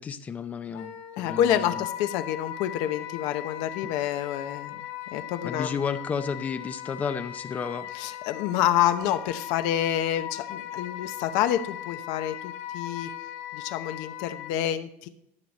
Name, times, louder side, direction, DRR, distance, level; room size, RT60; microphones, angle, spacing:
voice 1, 0.0-1.8 3.8-3.9 5.4-7.9, left 6 dB, 20° left, 11 dB, 0.5 m, -32 dB
Wind instrument woodwind instrument, 0.7-14.5, left 12 dB, 90° left, 2.5 m, -38 dB
voice 2, 1.2-4.8 5.1-5.8 7.9-13.1 13.5-15.1, left 11 dB, 65° left, 9 dB, 0.8 m, -28 dB
13.0 x 6.4 x 4.1 m, 0.73 s
cardioid pair, 160°, 7 cm